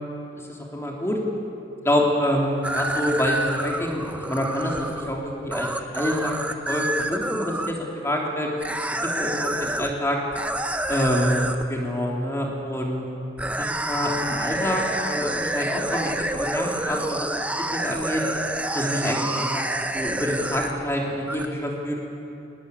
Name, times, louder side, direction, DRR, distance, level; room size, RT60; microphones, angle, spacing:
voice 1, 0.7-1.2 1.8-7.8 8.0-8.5 8.9-10.2 10.9-13.0 13.5-18.2 18.7-19.6 19.9-22.0, equal, 15° left, -1 dB, 3.3 m, -26 dB
sound 1, 2.6-7.7 8.6-9.9 10.3-11.6 13.4-20.9 21.3-21.5, right 1 dB, 5° right, 0.9 m, -28 dB
20.5 x 18.5 x 9.9 m, 2.8 s
head